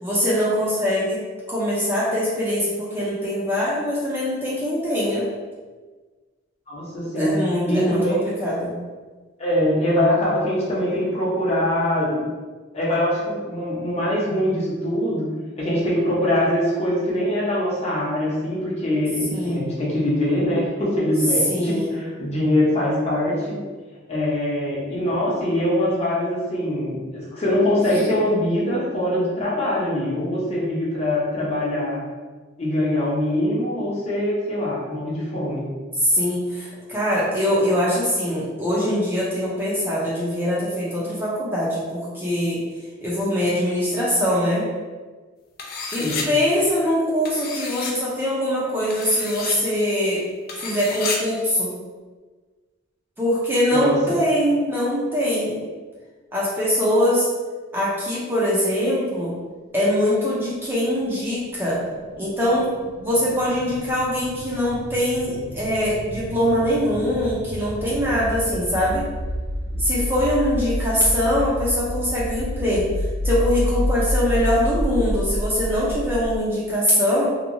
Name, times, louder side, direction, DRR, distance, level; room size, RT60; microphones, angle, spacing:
voice 1, 0.0-1.2 1.5-5.3 7.2-8.8 19.3-19.7 21.5-22.0 36.0-42.6 43.0-44.7 45.9-50.2 50.6-51.7 53.2-55.6 56.3-57.3 57.7-59.3 59.7-61.8 62.2-62.7 63.0-69.0 69.8-72.9 73.2-77.3, equal, 10° right, -7 dB, 0.5 m, -22 dB
voice 2, 6.7-7.4 7.7-8.2 9.4-12.3 12.7-15.3 15.6-23.6 24.1-32.0 32.6-35.6 46.0-46.3 53.7-54.0 69.7-69.8, left 1 dB, 35° left, -6 dB, 0.7 m, -23 dB
sound 1, 45.6-46.3 47.2-47.9 48.9-49.6 50.5-51.2, left 4 dB, 50° left, 0.4 m, -30 dB
sound 2, 60.5-76.4, equal, 70° right, 0.3 m, -29 dB
2.8 x 2.2 x 2.6 m, 1.4 s
head